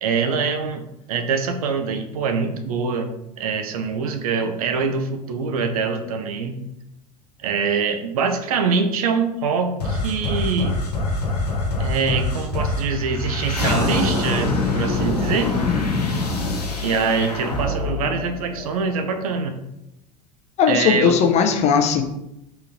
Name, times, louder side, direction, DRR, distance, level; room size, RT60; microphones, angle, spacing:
voice 1, 0.0-6.6 7.4-10.8 11.8-15.5 16.8-19.6 20.7-21.2, right 5 dB, 65° right, 6 dB, 0.6 m, -24 dB
sound 1, 9.8-19.1, left 2 dB, 80° left, 0.9 m, -24 dB
voice 2, 15.6-16.2 20.6-22.0, left 7 dB, 35° left, 5 dB, 0.6 m, -19 dB
4.2 x 3.8 x 2.6 m, 0.86 s
figure-of-eight pair, 80°, 20 cm